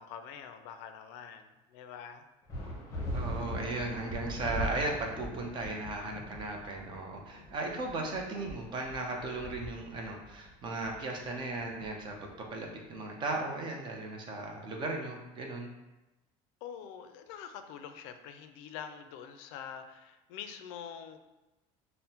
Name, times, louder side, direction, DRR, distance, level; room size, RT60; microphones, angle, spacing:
voice 1, 0.0-1.4 1.7-2.2 16.6-21.2, left 8 dB, 75° left, 8 dB, 0.4 m, -45 dB
sound 1, 2.5-12.5, equal, 20° left, 0.8 m, -41 dB
voice 2, 3.1-15.7, right 2 dB, 30° right, 1 dB, 0.6 m, -36 dB
5.5 x 2.1 x 2.8 m, 1.0 s
cardioid pair, 155°, 15 cm